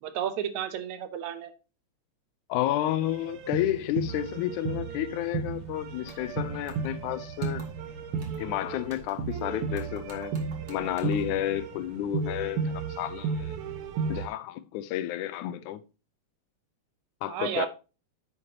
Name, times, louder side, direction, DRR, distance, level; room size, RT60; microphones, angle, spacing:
voice 1, 0.0-1.5 17.3-17.7, right 10 dB, 75° right, 2.2 m, -32 dB
voice 2, 2.5-7.7 8.4-10.4 10.7-13.6 14.1-15.8 17.2-17.7, left 13 dB, 85° left, 2.1 m, -31 dB
sound 1, 3.0-14.3, right 5 dB, 60° right, 1.7 m, -34 dB
sound 2, 6.0-6.3 6.7-7.1 7.4-7.9 8.2-8.5 8.8-9.4 9.7-11.4, right 3 dB, 25° right, 1.7 m, -52 dB
9.8 x 6.9 x 2.8 m
omnidirectional pair, 3.4 m